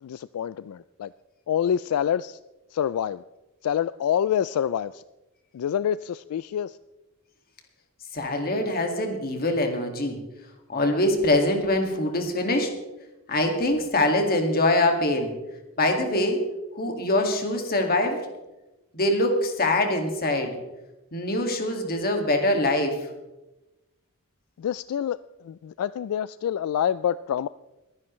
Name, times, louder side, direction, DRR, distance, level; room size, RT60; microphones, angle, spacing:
voice 1, 0.0-1.1 1.5-2.4 2.7-3.2 3.6-5.0 5.5-6.8 24.6-25.2 25.4-27.5, left 9 dB, 75° left, 16 dB, 0.3 m, -27 dB
voice 2, 8.1-10.2 10.7-12.7 13.3-15.3 15.8-16.4 16.7-18.2 18.9-20.6 21.1-23.1, left 1 dB, 45° left, 4 dB, 2.0 m, -24 dB
22.0 x 10.5 x 3.2 m, 1.0 s
head